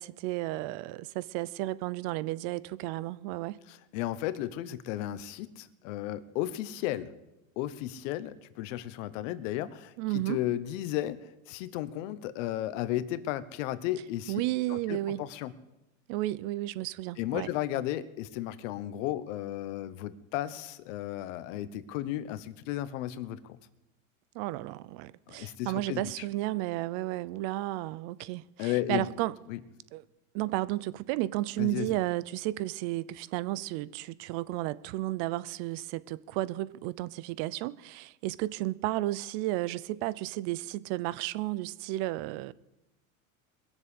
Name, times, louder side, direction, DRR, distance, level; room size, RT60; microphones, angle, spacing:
voice 1, 0.0-3.6 10.0-10.4 14.3-15.2 16.1-17.5 24.3-29.4 29.9-30.0 30.3-42.5, right 17 dB, 55° right, 0.8 m, -33 dB
voice 2, 3.7-7.1 7.6-11.2 11.5-14.3 14.7-15.5 17.2-23.6 25.3-26.2 28.6-29.1 29.5-29.6 31.6-31.9, left 13 dB, 65° left, 1.2 m, -34 dB
21.5 x 7.4 x 8.4 m
supercardioid pair, 120°, 40 cm